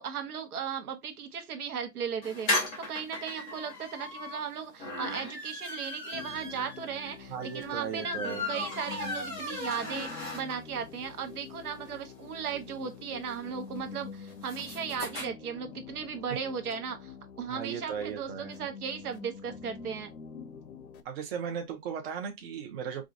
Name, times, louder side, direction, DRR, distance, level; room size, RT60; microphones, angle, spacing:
voice 1, 0.0-20.1, right 7 dB, 70° right, 1.1 m, -37 dB
sound 1, 2.2-10.8 11.2-11.3 11.5-11.6 11.9-15.3, left 2 dB, ahead, 0.3 m, -37 dB
sound 2, 6.1-21.0, left 6 dB, 60° left, 0.8 m, -46 dB
voice 2, 7.3-8.4 17.5-18.5 21.0-23.0, right 7 dB, 40° right, 0.9 m, -36 dB
4.8 x 2.5 x 2.6 m
hypercardioid pair, 140°, 47 cm